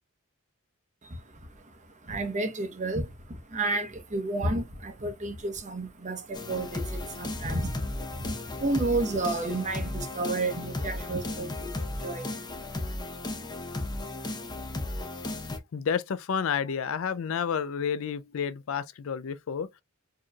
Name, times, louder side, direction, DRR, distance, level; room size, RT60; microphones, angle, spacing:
voice 1, 1.0-13.0, right 2 dB, 35° right, 0.9 m, -32 dB
sound 1, 6.3-15.6, left 2 dB, 20° left, 0.7 m, -35 dB
voice 2, 15.7-19.8, left 7 dB, 65° left, 0.4 m, -30 dB
4.6 x 3.0 x 2.3 m
head